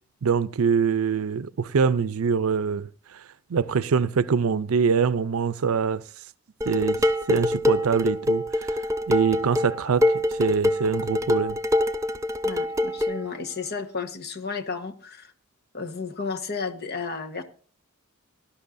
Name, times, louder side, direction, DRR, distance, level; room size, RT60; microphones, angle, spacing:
voice 1, 0.2-3.2 3.5-6.0 6.7-7.0 7.3-8.8 9.1-11.6, right 6 dB, 85° right, 0.5 m, -24 dB
Dishes pots and pans, 6.6-13.2, left 1 dB, 15° right, 0.6 m, -24 dB
voice 2, 12.4-15.3 15.7-17.4, left 5 dB, 50° left, 1.3 m, -33 dB
18.5 x 12.0 x 2.6 m
head